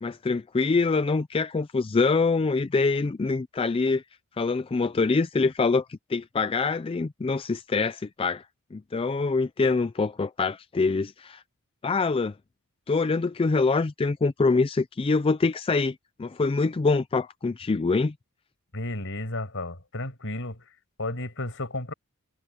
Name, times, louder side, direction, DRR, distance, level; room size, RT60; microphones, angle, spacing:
voice 1, 0.0-4.0 4.4-8.5 8.7-11.4 11.8-12.3 12.9-18.1, left 4 dB, 25° left, 0.4 m, -25 dB
voice 2, 18.7-20.7 21.0-21.9, left 2 dB, 60° left, 6.8 m, -33 dB
head